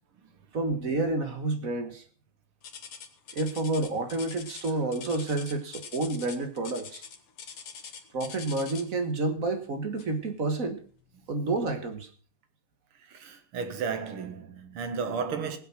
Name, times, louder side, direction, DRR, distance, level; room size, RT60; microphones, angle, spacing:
voice 1, 0.5-2.0 3.3-7.0 8.1-10.8 11.3-12.1, right 2 dB, 40° right, 1.8 m, -29 dB
sound 1, 2.6-9.0 10.0-10.2 10.8-10.9 11.6-11.7, left 6 dB, 90° left, 2.5 m, -44 dB
voice 2, 13.0-15.6, right 5 dB, 85° right, 2.4 m, -33 dB
18.5 x 8.0 x 5.8 m
omnidirectional pair, 2.4 m